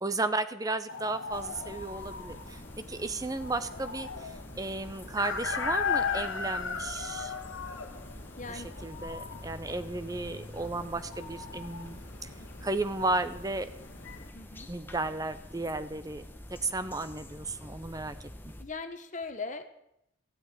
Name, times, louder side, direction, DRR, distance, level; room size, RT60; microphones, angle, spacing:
voice 1, 0.0-2.6 2.9-7.3 8.4-12.0 12.6-13.7 14.7-18.3, right 2 dB, 20° right, 11 dB, 0.8 m, -34 dB
sound 1, 0.9-14.3, left 6 dB, 80° left, 1.4 m, -38 dB
sound 2, 1.3-18.6, left 1 dB, 10° left, 1.0 m, -47 dB
voice 2, 8.4-8.7 14.3-14.7 18.6-19.6, left 4 dB, 40° left, 8 dB, 1.0 m, -39 dB
15.0 x 6.3 x 9.8 m, 0.80 s
head